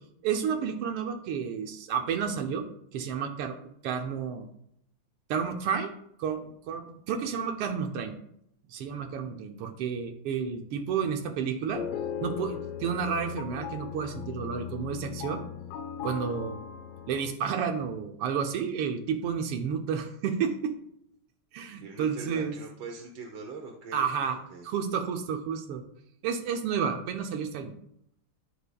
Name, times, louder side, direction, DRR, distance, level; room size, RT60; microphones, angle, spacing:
voice 1, 0.2-2.7 2.9-3.6 3.8-4.5 5.3-5.9 6.2-8.1 8.7-11.8 12.2-15.4 16.0-16.6 17.1-20.7 21.5-22.6 23.9-24.4 24.6-25.8 26.2-27.7, right 7 dB, 90° right, 5 dB, 1.7 m, -31 dB
Jazzy Ambient Piano (Mansion), 11.7-17.3, left 8 dB, 75° left, 1.4 m, -38 dB
voice 2, 21.8-24.7, right 4 dB, 65° right, 2 dB, 1.5 m, -43 dB
14.5 x 5.1 x 2.2 m, 0.74 s
omnidirectional pair, 2.4 m